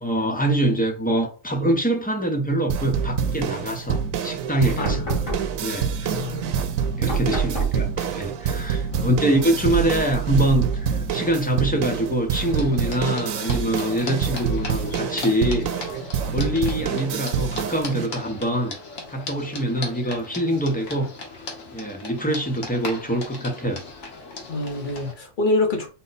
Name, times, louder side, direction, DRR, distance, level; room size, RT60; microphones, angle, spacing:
voice 1, 0.0-5.0 5.6-5.9 7.0-15.7 16.3-18.7 19.1-21.1 21.7-23.8, right 1 dB, 10° left, 0.5 m, -24 dB
sound 1, 2.7-18.1, right 7 dB, 85° right, 1.0 m, -27 dB
sound 2, 4.8-12.3, right 6 dB, 85° left, 1.9 m, -32 dB
voice 2, 4.8-5.3 6.1-6.7 8.9-9.2 16.3-16.5 24.5-25.9, left 2 dB, 40° left, 1.0 m, -27 dB
sound 3, 12.4-25.1, left 3 dB, 65° left, 1.4 m, -37 dB
4.0 x 2.2 x 4.0 m
omnidirectional pair, 1.4 m